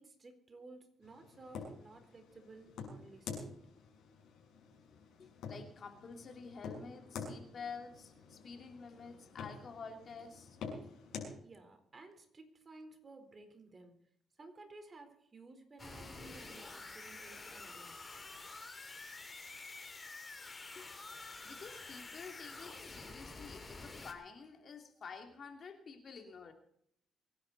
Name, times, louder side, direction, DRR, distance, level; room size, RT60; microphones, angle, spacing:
voice 1, 0.0-3.5 11.4-14.0 14.4-18.1, right 3 dB, 35° right, 6 dB, 4.2 m, -55 dB
sound 1, 1.0-11.3, left 5 dB, 80° left, 6.4 m, -48 dB
voice 2, 5.2-10.6 20.7-21.0 21.4-26.5, left 5 dB, 50° left, 5 dB, 2.9 m, -50 dB
sound 2, 15.8-24.1, left 3 dB, 25° left, 3.1 m, -49 dB
25.0 x 11.0 x 4.2 m, 0.69 s
cardioid pair, 90°, 0 cm